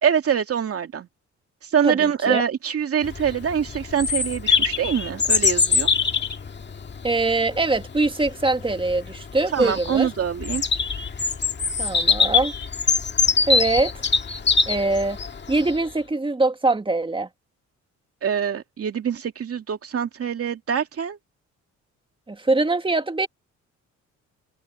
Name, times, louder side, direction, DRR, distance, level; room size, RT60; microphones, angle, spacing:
voice 1, 0.0-1.1 1.6-5.9 9.5-10.6 18.2-21.2, right 8 dB, 50° right, 2.5 m, -24 dB
voice 2, 1.8-2.4 7.0-10.1 11.8-12.5 13.5-13.9 14.7-15.2 15.5-17.3 22.3-23.3, right 2 dB, 15° right, 2.0 m, -23 dB
Bird vocalization bird call bird song, 3.0-15.8, left 5 dB, 35° left, 1.8 m, -23 dB
cardioid pair, 90°, 30 cm